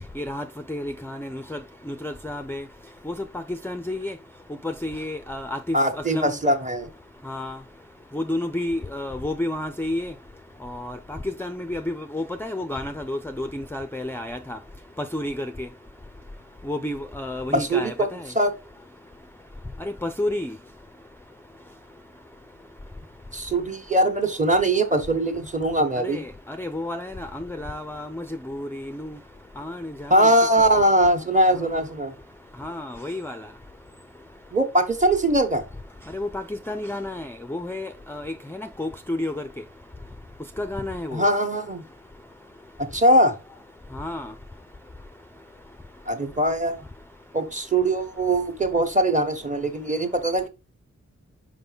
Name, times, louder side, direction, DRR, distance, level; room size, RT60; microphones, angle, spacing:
voice 1, 0.2-1.6 1.9-2.6 3.1-4.1 4.6-6.4 7.2-7.6 8.1-10.1 10.6-14.6 15.0-15.7 16.7-18.3 19.8-20.5 26.0-29.2 29.6-30.3 32.6-33.4 36.1-39.4 40.6-41.3 43.9-44.3, left 1 dB, 10° left, 0.4 m, -31 dB
voice 2, 5.7-6.9 17.5-18.1 18.3-18.5 23.3-26.2 30.1-32.1 34.5-35.6 41.1-41.8 42.8-43.3 46.1-46.8 47.3-50.5, right 1 dB, 25° right, 1.2 m, -21 dB
5.4 x 5.1 x 4.0 m
wide cardioid pair, 105°, 29 cm